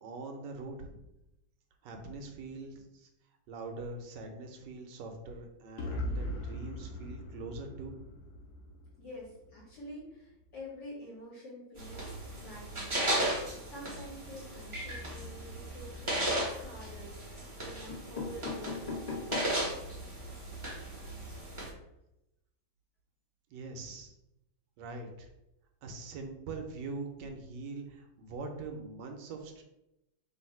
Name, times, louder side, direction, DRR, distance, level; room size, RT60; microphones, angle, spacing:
voice 1, 0.0-1.0 1.8-3.1 3.5-8.0 23.5-24.1 24.8-25.3 25.8-29.6, right 3 dB, 70° right, 4 dB, 1.1 m, -43 dB
sound 1, 5.8-9.7, left 1 dB, 85° left, 0.8 m, -39 dB
voice 2, 9.0-19.8, equal, 60° left, -6 dB, 1.7 m, -48 dB
sound 2, 11.8-21.7, right 1 dB, 30° right, 0.5 m, -36 dB
sound 3, 16.2-16.8 17.5-17.6 17.9-19.7 20.2-20.3 20.5-20.6 20.9-21.0, left 4 dB, 25° left, 0.9 m, -40 dB
3.5 x 2.6 x 4.4 m, 0.89 s
omnidirectional pair, 2.3 m